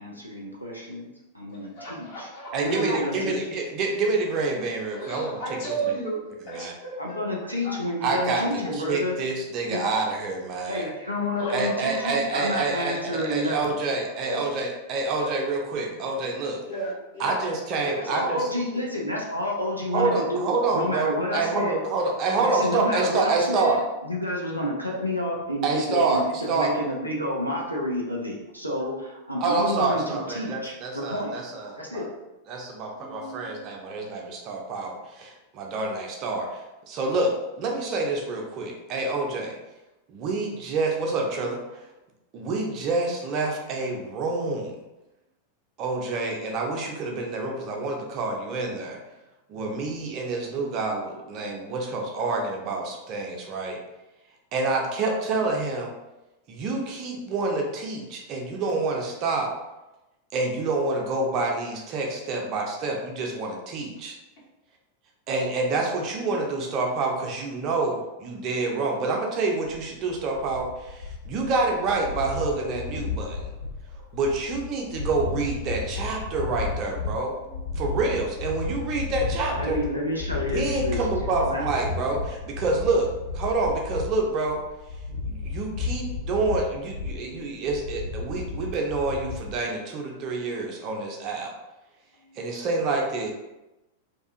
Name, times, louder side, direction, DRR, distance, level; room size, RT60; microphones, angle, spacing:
voice 1, 0.0-3.3 7.0-9.2 9.7-10.0 10.7-13.7 17.9-21.9 22.4-31.3 31.7-32.1 79.5-81.1 81.4-81.7, left 1 dB, 90° left, -2 dB, 0.4 m, -30 dB
voice 2, 1.7-3.0 4.9-7.2 7.6-7.8 8.9-9.0 11.4-12.1 12.4-12.5 14.1-14.5 14.9-15.5 15.8-16.0 16.6-17.4 17.8-18.1 18.7-18.8 32.9-33.7 77.4-77.7 92.2-92.4, right 3 dB, 50° left, -7 dB, 1.1 m, -35 dB
voice 3, 2.5-5.4 6.5-6.7 8.0-10.9 11.5-16.6 17.2-18.5 19.9-23.8 25.6-26.2 26.5-26.7 29.4-32.1 32.5-39.6 40.1-41.9 42.3-44.7 45.8-49.0 49.5-53.8 54.5-55.9 56.5-59.5 60.3-64.2 65.3-73.5 74.1-77.3 77.8-79.8 80.5-83.1 83.3-84.6 85.2-91.5 92.3-93.3, right 3 dB, 40° right, 1 dB, 0.5 m, -27 dB
sound 1, 69.7-89.5, left 4 dB, 70° left, 0.9 m, -33 dB
2.5 x 2.4 x 2.4 m, 0.99 s
figure-of-eight pair, 90°, 0 cm